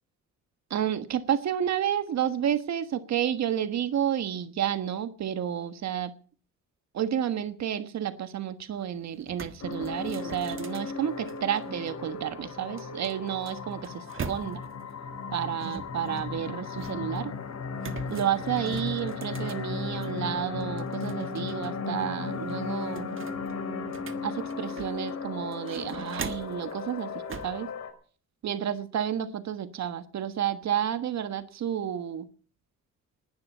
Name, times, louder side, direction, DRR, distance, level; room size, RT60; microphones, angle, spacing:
voice 1, 0.7-6.1 6.9-14.6 15.3-17.3 18.1-23.1 24.2-27.7 28.4-32.3, right 10 dB, 65° right, 10 dB, 1.4 m, -31 dB
sound 1, 8.7-8.8 9.1-11.9 12.8-14.8 15.6-17.2 17.8-20.2 20.6-21.7 22.0-22.1 22.5-25.1 25.5-26.6 27.3-27.6, right 6 dB, 45° right, 1.7 m, -42 dB
sound 2, 9.6-27.9, left 4 dB, 60° left, 4.7 m, -36 dB
19.0 x 11.5 x 5.6 m, 0.41 s
cardioid pair, 90°, 30 cm